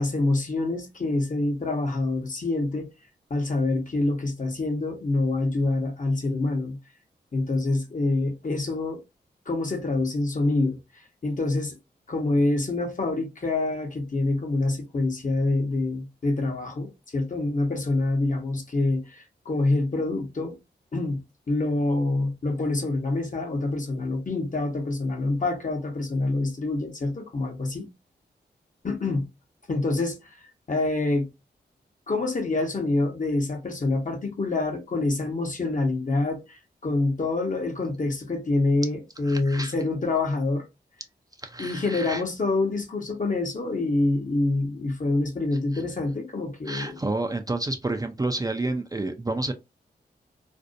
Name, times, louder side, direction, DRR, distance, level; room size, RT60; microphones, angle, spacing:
voice 1, 0.0-2.9 3.3-6.8 7.3-9.0 9.5-10.8 11.2-11.8 12.1-20.6 20.9-21.2 21.5-27.9 28.8-29.3 29.7-30.3 30.7-31.3 32.1-40.6 41.6-47.0, left 2 dB, 45° left, 0.9 m, -26 dB
voice 2, 39.3-39.7 41.4-42.2 46.7-49.5, right 2 dB, 20° right, 0.4 m, -29 dB
2.5 x 2.1 x 2.5 m
cardioid pair, 45°, 18 cm